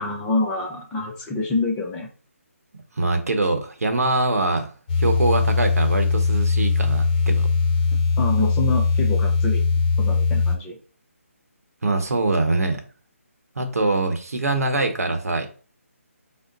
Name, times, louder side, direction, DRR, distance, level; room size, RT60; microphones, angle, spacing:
voice 1, 0.0-2.1 8.2-9.7 10.0-10.8, left 2 dB, 10° left, -1 dB, 0.5 m, -26 dB
voice 2, 3.0-4.7 5.0-7.5 11.8-12.8 13.6-15.5, right 2 dB, 80° right, 5 dB, 0.8 m, -23 dB
sound 1, 4.9-10.6, left 4 dB, 35° left, 0.8 m, -20 dB
3.7 x 2.1 x 3.8 m, 0.39 s
figure-of-eight pair, 155°, 8 cm